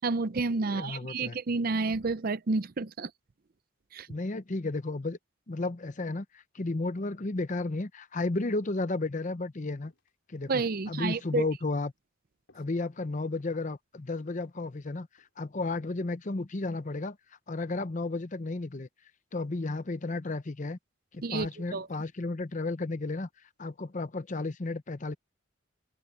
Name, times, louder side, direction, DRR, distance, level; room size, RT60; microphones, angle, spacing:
voice 1, 0.0-3.1 3.9-4.1 10.5-11.4 21.2-21.9, right 3 dB, 45° right, 0.5 m, -30 dB
voice 2, 0.7-1.4 4.1-5.2 5.5-9.9 10.3-11.9 12.5-17.2 17.5-18.9 19.3-20.8 21.1-23.3 23.6-25.1, left 2 dB, 35° left, 0.7 m, -33 dB
sound 1, 9.8-10.1 10.7-11.1 11.5-11.7 12.5-12.8 13.2-13.7 14.3-14.6 15.0-15.3 16.0-16.3 16.9-17.3 17.6-17.7, left 2 dB, 60° left, 4.9 m, -65 dB
open air
head